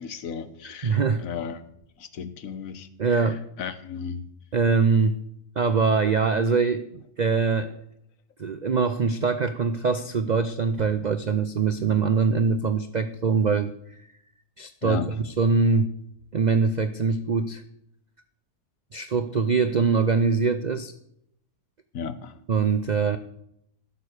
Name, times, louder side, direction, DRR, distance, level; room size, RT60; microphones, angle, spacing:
voice 1, 0.0-1.6 2.0-3.3 3.6-4.3 11.8-12.0 14.8-15.1 21.9-22.3, left 6 dB, 65° left, 11 dB, 1.3 m, -35 dB
voice 2, 0.8-1.2 3.0-3.4 4.5-5.2 5.6-7.7 8.4-13.7 14.6-15.9 16.3-17.6 18.9-20.9 22.5-23.2, right 5 dB, 85° right, 10 dB, 0.3 m, -23 dB
11.5 x 6.8 x 8.1 m, 0.75 s
omnidirectional pair, 1.6 m